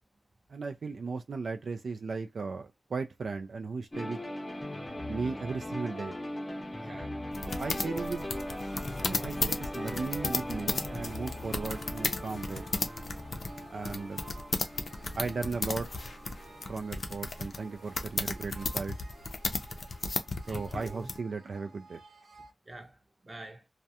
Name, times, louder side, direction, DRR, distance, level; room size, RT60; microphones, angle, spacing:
voice 1, 0.5-4.2 5.1-6.2 7.6-8.3 9.0-12.6 13.7-14.2 15.2-15.9 16.7-19.0 20.5-22.0, right 4 dB, 70° right, 0.3 m, -36 dB
sound 1, 3.9-17.7, left 1 dB, 20° left, 0.7 m, -40 dB
voice 2, 6.7-7.3 19.7-19.8 20.4-21.1 22.6-23.7, right 1 dB, 25° right, 0.7 m, -47 dB
sound 2, 7.3-21.2, left 3 dB, 55° left, 0.4 m, -34 dB
sound 3, 7.5-22.5, right 4 dB, 90° right, 0.9 m, -54 dB
2.3 x 2.1 x 2.7 m
wide cardioid pair, 130°, 0 cm